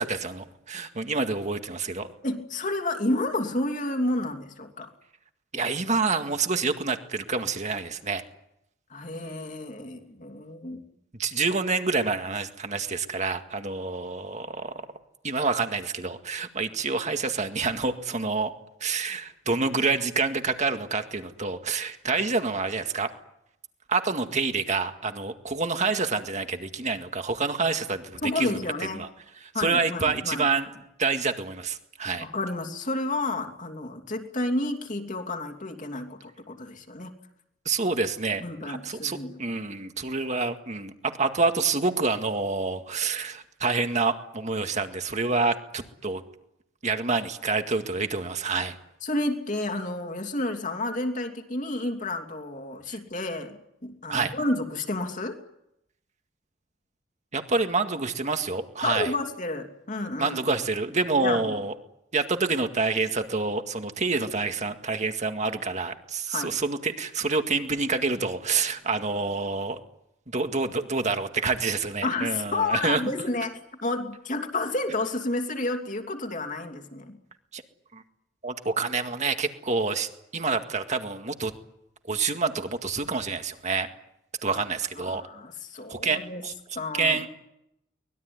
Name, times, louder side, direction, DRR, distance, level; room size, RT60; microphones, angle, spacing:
voice 1, 0.0-2.1 5.5-8.2 11.2-14.9 15.2-18.5 18.8-23.1 23.9-28.6 29.0-29.1 29.4-30.7 31.0-32.3 37.7-46.2 46.8-48.8 54.1-54.3 57.3-59.1 60.2-61.7 62.1-69.8 70.3-73.0 77.5-77.6 77.9-78.0 78.4-81.5 82.1-83.9 84.4-85.2 85.9-86.5 86.9-87.3, right 4 dB, 35° right, 7 dB, 2.0 m, -27 dB
voice 2, 2.2-4.9 8.9-10.8 28.2-29.0 29.5-30.5 32.1-37.1 38.4-39.4 49.0-55.4 58.8-60.4 61.2-61.6 66.3-66.5 72.0-77.2 84.5-84.6 85.0-86.4 86.7-87.2, left 2 dB, 40° left, 5 dB, 2.9 m, -30 dB
24.0 x 20.5 x 9.7 m, 0.81 s
head